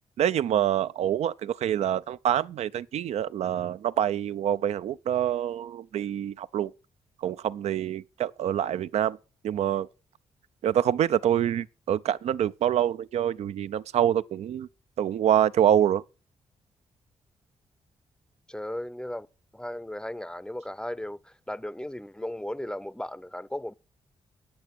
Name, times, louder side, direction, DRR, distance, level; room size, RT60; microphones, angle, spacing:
voice 1, 0.2-6.7 7.2-9.2 9.4-9.9 10.6-14.7 15.0-16.0, right 10 dB, 75° right, 0.4 m, -26 dB
voice 2, 18.5-19.3 19.5-23.7, left 1 dB, 5° left, 0.6 m, -36 dB
8.6 x 8.4 x 6.0 m
cardioid pair, 60°, 11 cm